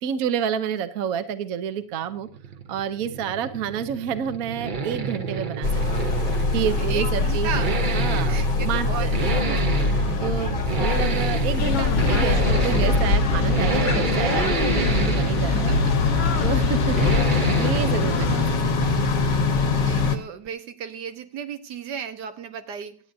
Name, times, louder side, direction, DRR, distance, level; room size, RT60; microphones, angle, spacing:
voice 1, 0.0-2.3 2.7-6.1 6.5-7.5 7.9-9.1 9.5-9.6 10.2-15.9 16.4-17.1 17.4-19.0, right 8 dB, 60° right, 11 dB, 1.1 m, -29 dB
Accelerating revving vroom, 2.0-20.2 20.5-20.6, right 5 dB, 45° right, 0.6 m, -29 dB
sound 1, 5.6-20.2, left 4 dB, 55° left, 1.5 m, -24 dB
voice 2, 6.4-9.3 10.2-10.5 15.5-16.8 19.7-23.0, right 7 dB, 80° right, 8 dB, 1.6 m, -36 dB
sound 2, 11.6-18.6, left 4 dB, 75° left, 1.6 m, -26 dB
25.5 x 8.8 x 2.7 m, 0.39 s
omnidirectional pair, 1.8 m